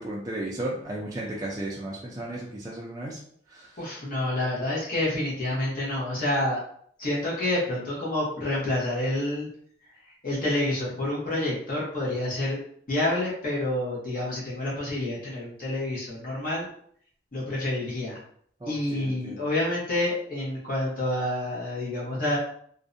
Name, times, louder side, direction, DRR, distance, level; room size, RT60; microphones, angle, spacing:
voice 1, 0.0-3.2 3.5-3.8 18.6-19.4, right 1 dB, 20° right, -4 dB, 0.3 m, -34 dB
voice 2, 3.8-6.6 7.0-9.5 10.1-12.6 12.9-16.7 17.3-18.2 18.7-22.4, left 1 dB, 50° left, -6 dB, 0.8 m, -28 dB
2.5 x 2.0 x 2.5 m, 0.62 s
head